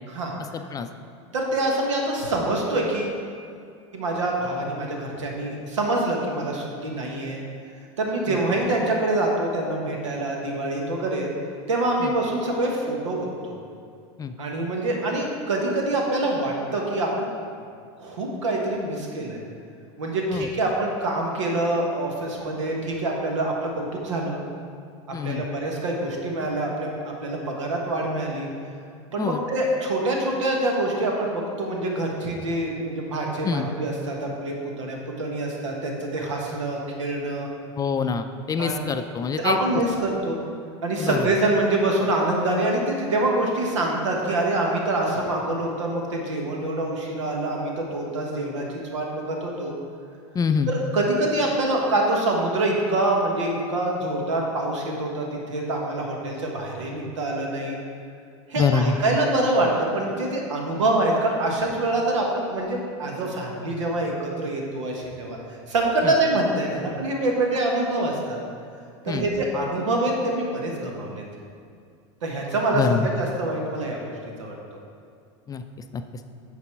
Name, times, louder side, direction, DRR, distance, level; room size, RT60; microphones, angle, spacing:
voice 1, 1.3-3.1 3.9-7.4 8.0-11.3 11.7-13.5 14.4-17.3 18.0-19.4 20.0-24.4 25.2-26.9 27.2-28.5 29.1-37.5 38.6-38.8 39.4-40.4 40.8-49.7 50.7-57.8 58.5-59.7 59.9-65.4 65.7-68.4 69.0-71.2 72.2-74.1 74.4-74.6, right 2 dB, 90° right, 0 dB, 1.3 m, -25 dB
voice 2, 25.1-25.4 29.2-29.4 33.4-33.7 37.8-39.6 41.0-41.3 50.3-50.7 58.6-59.0 66.0-66.1 69.1-69.3 72.7-73.1 75.5-75.6 75.9-76.0, left 6 dB, 25° left, 8 dB, 0.4 m, -25 dB
9.6 x 4.1 x 4.6 m, 2.3 s
hypercardioid pair, 100°, 15 cm